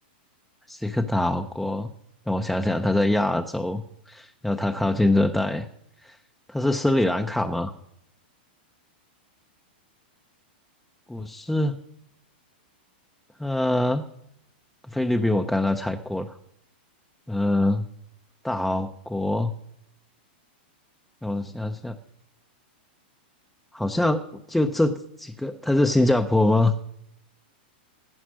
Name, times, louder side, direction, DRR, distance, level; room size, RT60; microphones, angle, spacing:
voice 1, 0.7-1.9 2.3-5.7 6.0-6.2 6.5-7.7 11.1-11.8 13.4-14.0 14.9-16.4 17.3-17.9 18.4-19.5 21.2-22.0 23.7-24.2 24.5-26.8, left 1 dB, ahead, 5 dB, 0.5 m, -24 dB
17.5 x 10.0 x 6.2 m, 0.76 s
supercardioid pair, 170°, 6 cm